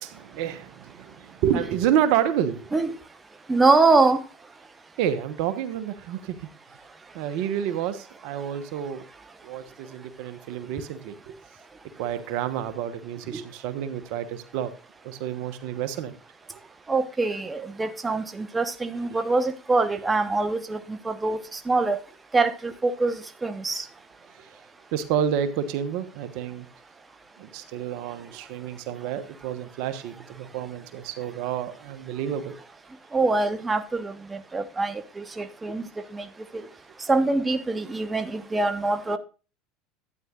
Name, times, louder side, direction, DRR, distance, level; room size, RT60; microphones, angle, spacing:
voice 1, 0.0-2.7 5.0-6.4 7.1-9.0 9.4-11.4 12.0-14.7 15.0-16.2 24.9-26.6 27.4-32.6 36.5-36.7, right 9 dB, 65° right, 1.1 m, -29 dB
voice 2, 3.5-4.2 13.3-13.4 16.9-21.4 21.7-22.0 22.3-23.8 33.1-34.1 34.5-36.3 37.1-39.2, right 3 dB, 20° right, 1.1 m, -24 dB
12.5 x 9.3 x 2.4 m
hypercardioid pair, 80°, 0 cm